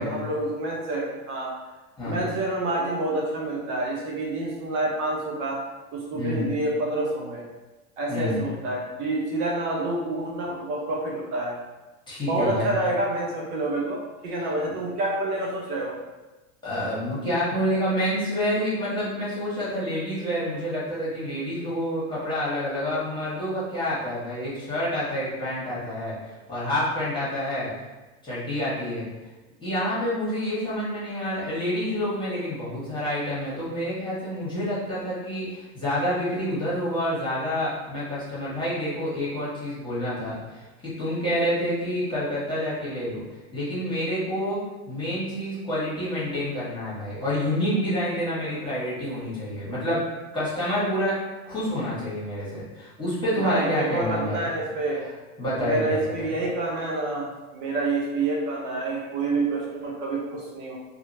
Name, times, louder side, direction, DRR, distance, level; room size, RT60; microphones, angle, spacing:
voice 1, 0.0-1.5 2.0-5.6 5.9-7.4 8.0-11.6 12.3-16.0 53.4-55.0 55.6-60.8, right 2 dB, 55° right, -2 dB, 0.7 m, -28 dB
voice 2, 6.1-6.5 8.1-8.5 12.1-12.8 16.6-26.2 26.5-27.7 28.2-29.1 29.6-43.2 43.5-44.6 44.9-50.0 50.3-51.2 51.5-54.5 55.4-56.0, equal, 10° left, -9 dB, 1.4 m, -28 dB
2.7 x 2.4 x 2.7 m, 1.1 s
hypercardioid pair, 105°, 43 cm